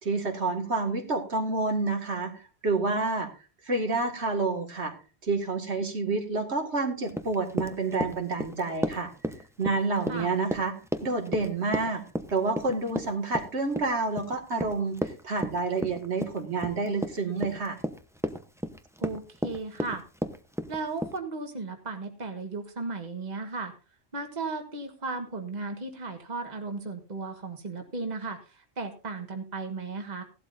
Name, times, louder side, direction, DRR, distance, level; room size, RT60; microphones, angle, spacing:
voice 1, 0.0-3.3 3.7-4.9 5.2-9.1 9.6-10.8 11.0-12.0 12.3-17.8, right 3 dB, 85° right, 3 dB, 2.4 m, -29 dB
Run, 7.1-21.2, equal, 5° right, 0.7 m, -34 dB
voice 2, 19.0-20.0 20.7-23.7 24.1-30.2, right 3 dB, 40° right, 5 dB, 1.6 m, -35 dB
16.5 x 12.0 x 2.6 m, 0.32 s
omnidirectional pair, 1.1 m